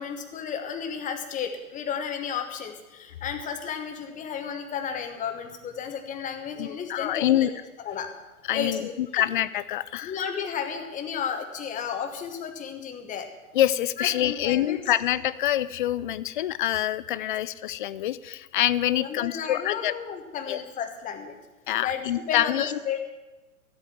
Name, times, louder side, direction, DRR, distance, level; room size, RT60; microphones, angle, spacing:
voice 1, 0.0-7.5 7.8-8.1 8.5-9.2 10.0-13.3 14.0-14.8 19.0-21.4 21.8-23.0, left 7 dB, 15° left, 6 dB, 1.3 m, -33 dB
voice 2, 6.6-7.5 8.5-10.1 13.5-19.9 20.5-20.6 21.7-22.8, left 12 dB, 35° left, 17 dB, 0.4 m, -26 dB
13.5 x 8.5 x 7.3 m, 1.1 s
hypercardioid pair, 125°, 44 cm